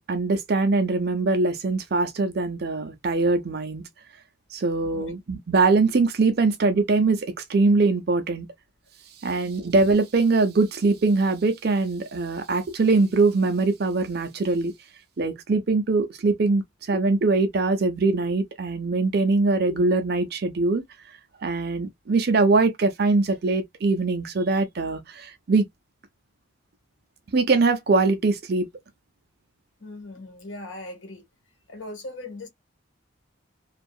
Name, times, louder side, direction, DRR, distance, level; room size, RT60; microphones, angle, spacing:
voice 1, 0.0-3.8 4.5-8.5 9.2-14.7 15.2-20.8 21.4-25.6 27.3-28.7, right 3 dB, 55° right, 0.5 m, -22 dB
voice 2, 29.8-31.3 31.7-32.5, left 2 dB, 70° left, 1.2 m, -39 dB
2.6 x 2.3 x 2.3 m
head